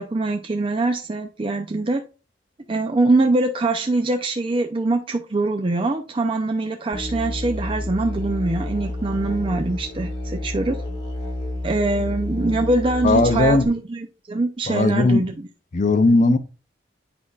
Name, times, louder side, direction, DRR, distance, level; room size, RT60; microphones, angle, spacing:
voice 1, 0.0-2.0 2.7-10.8 11.6-15.3 16.2-16.3, right 2 dB, 30° right, 0.5 m, -23 dB
Musical instrument, 6.9-13.7, left 1 dB, 25° left, 1.7 m, -30 dB
voice 2, 13.0-13.7 14.7-15.3 15.7-16.4, left 3 dB, 45° left, 0.5 m, -17 dB
8.5 x 5.3 x 2.4 m
head